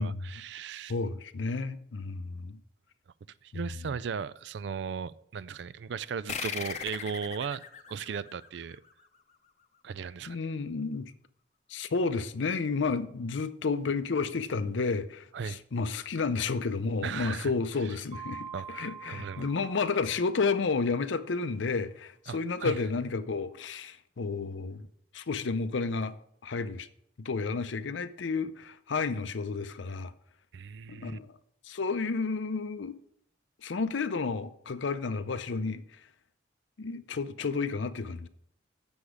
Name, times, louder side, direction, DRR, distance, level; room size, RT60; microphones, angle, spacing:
voice 1, 0.0-0.9 3.4-7.6 7.9-8.8 9.8-10.4 15.3-15.6 17.0-17.5 17.8-18.0 18.5-19.5 22.3-22.8 30.5-31.2, right 6 dB, 70° right, 0.4 m, -37 dB
voice 2, 0.9-2.6 10.3-11.1 11.7-24.9 25.1-26.1 26.4-26.9 27.2-30.1 30.9-31.3 31.7-33.0 33.6-35.8 36.8-38.3, left 4 dB, 80° left, 0.6 m, -31 dB
sound 1, 6.3-9.3, left 6 dB, 35° left, 0.7 m, -39 dB
Mallet percussion, 18.1-20.7, right 7 dB, 30° right, 1.3 m, -45 dB
8.0 x 7.1 x 4.9 m
head